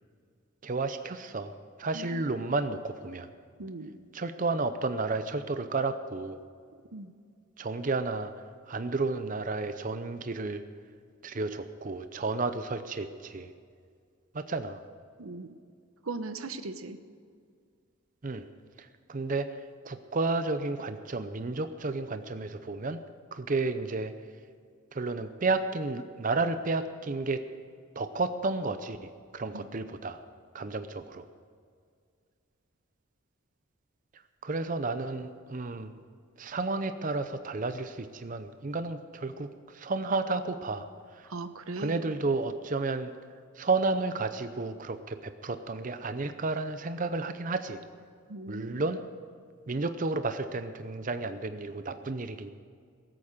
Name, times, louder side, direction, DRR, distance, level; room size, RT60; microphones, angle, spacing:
voice 1, 0.6-1.5 1.8-3.3 4.1-6.4 7.6-8.3 8.7-10.6 11.2-13.5 14.3-14.8 18.2-18.4 18.8-19.5 19.8-23.0 23.3-24.1 24.9-27.4 28.0-30.2 30.5-31.2 34.4-35.9 36.4-40.9 41.1-41.3 41.8-43.1 43.6-47.8 48.5-49.0 49.7-52.5, right 3 dB, 40° right, 10 dB, 0.6 m, -32 dB
voice 2, 3.6-4.0 6.9-7.1 15.2-15.5 16.0-17.0 29.5-29.7 41.2-42.0 48.3-48.8, right 3 dB, 90° right, 10 dB, 0.9 m, -39 dB
19.0 x 8.7 x 6.6 m, 2.1 s
head